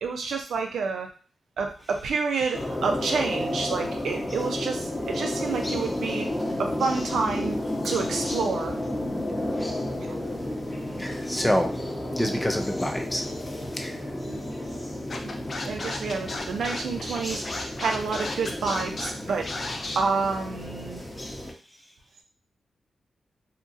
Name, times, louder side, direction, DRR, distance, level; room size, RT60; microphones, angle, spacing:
voice 1, 0.0-1.1 1.6-6.3 6.6-7.5 7.8-8.7 14.3-14.4 15.6-21.0, right 4 dB, 85° right, 3 dB, 0.5 m, -29 dB
sound 1, 2.5-21.5, left 1 dB, 30° left, 1.0 m, -32 dB
voice 2, 11.0-11.7 12.2-13.3 13.7-14.0, equal, 15° left, 4 dB, 0.6 m, -27 dB
Scratching (performance technique), 15.1-20.0, left 2 dB, 55° left, 0.5 m, -34 dB
2.8 x 2.4 x 2.6 m, 0.37 s
cardioid pair, 50°, 0 cm